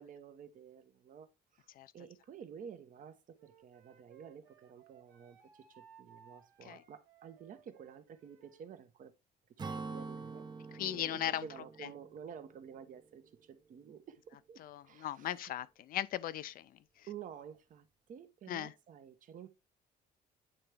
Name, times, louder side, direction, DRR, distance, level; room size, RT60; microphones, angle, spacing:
voice 1, 0.0-9.1 9.7-10.5 10.8-15.5 17.1-19.5, right 8 dB, 50° right, 0.9 m, -51 dB
Wind instrument woodwind instrument, 3.4-8.7, right 7 dB, 80° right, 1.6 m, -62 dB
Acoustic guitar / Strum, 9.6-13.2, right 4 dB, 25° right, 0.6 m, -46 dB
voice 2, 10.8-11.5 14.6-16.7 18.5-18.7, left 12 dB, 60° left, 0.5 m, -37 dB
8.8 x 3.3 x 3.4 m
cardioid pair, 110°, 17 cm